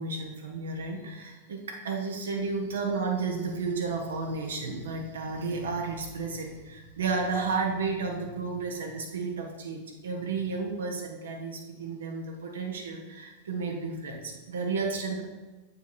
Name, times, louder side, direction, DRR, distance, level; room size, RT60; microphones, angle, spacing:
voice 1, 0.0-15.2, right 4 dB, 65° right, 0 dB, 1.1 m, -32 dB
7.9 x 5.6 x 4.4 m, 1.2 s
figure-of-eight pair, 90°, 0 cm